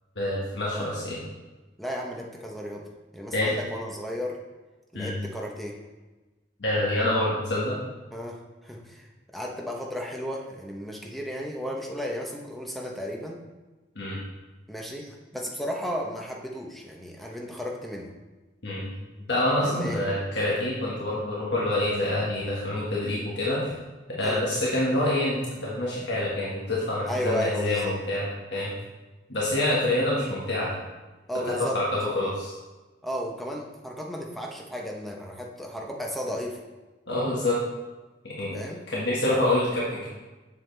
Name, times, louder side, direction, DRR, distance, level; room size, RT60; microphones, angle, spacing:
voice 1, 0.1-1.2 3.3-3.5 4.9-5.1 6.6-7.7 13.9-14.2 18.6-18.9 19.3-23.6 24.2-28.2 28.5-28.7 29.3-30.8 31.5-32.5 37.1-37.6 38.2-38.6 38.9-40.1, left 1 dB, 70° left, -6 dB, 1.6 m, -26 dB
voice 2, 1.8-4.4 4.9-5.8 8.1-13.4 14.7-18.1 19.6-20.0 24.2-24.4 27.1-28.0 31.3-31.8 33.0-36.6 38.5-38.8, equal, ahead, 0 dB, 0.9 m, -34 dB
7.4 x 7.0 x 3.4 m, 1.2 s
head